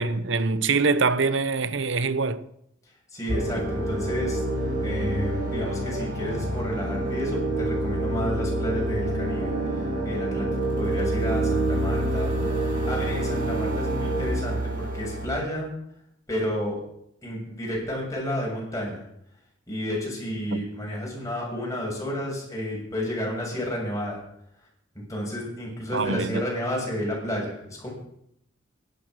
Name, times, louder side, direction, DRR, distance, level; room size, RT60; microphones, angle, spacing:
voice 1, 0.0-2.5 20.5-20.6 25.9-26.4, right 4 dB, 65° right, 0.9 m, -24 dB
voice 2, 3.1-10.5 10.8-12.3 12.8-15.7 16.3-16.8 17.2-19.0 19.7-24.2 25.1-27.9, equal, 15° left, 6.8 m, -31 dB
sound 1, 3.3-15.3, right 1 dB, 40° right, 5.7 m, -27 dB
16.5 x 11.5 x 6.3 m
head